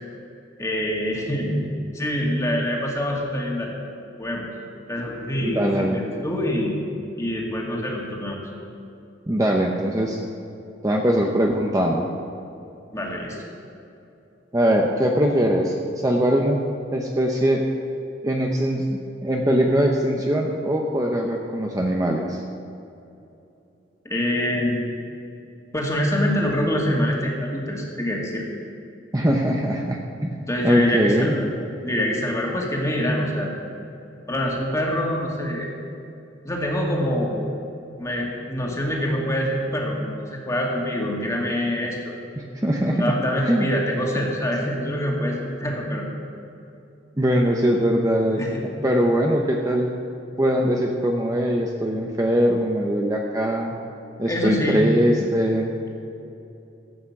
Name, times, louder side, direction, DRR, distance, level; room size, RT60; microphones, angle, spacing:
voice 1, 0.6-1.6 1.9-3.7 4.2-4.5 4.9-6.8 7.2-8.4 12.9-13.4 24.0-24.9 25.7-28.4 30.5-31.5 31.8-33.5 34.3-35.7 36.4-37.5 38.0-42.1 42.9-46.0 48.4-48.6 54.3-54.8, left 1 dB, 15° left, -2 dB, 2.2 m, -25 dB
voice 2, 5.4-6.0 9.3-10.2 10.8-12.1 14.5-16.6 16.9-17.6 18.2-22.4 29.1-30.3 30.6-31.3 42.4-43.7 47.2-49.9 50.4-53.7 54.2-55.7, equal, 20° right, 0 dB, 0.8 m, -22 dB
14.5 x 8.6 x 7.1 m, 2.7 s
head